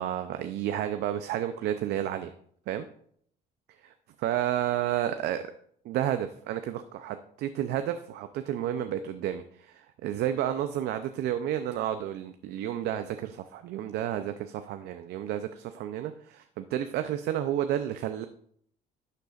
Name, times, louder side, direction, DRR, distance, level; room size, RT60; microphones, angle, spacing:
voice 1, 0.0-2.3 2.7-2.9 3.8-5.4 5.8-18.2, right 11 dB, 75° right, 9 dB, 0.5 m, -31 dB
11.5 x 6.6 x 2.4 m, 0.64 s
cardioid pair, 110°, 17 cm